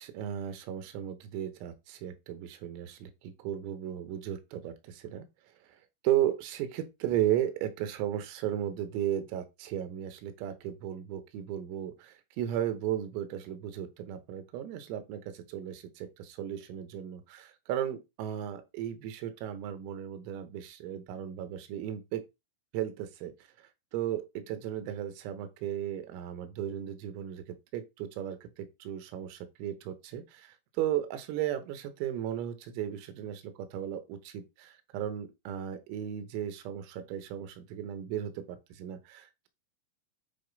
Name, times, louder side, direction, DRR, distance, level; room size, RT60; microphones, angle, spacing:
voice 1, 0.0-5.3 6.0-22.2 22.7-23.3 23.9-39.5, right 11 dB, 85° right, 3.8 m, -35 dB
10.0 x 3.4 x 5.2 m
omnidirectional pair, 5.9 m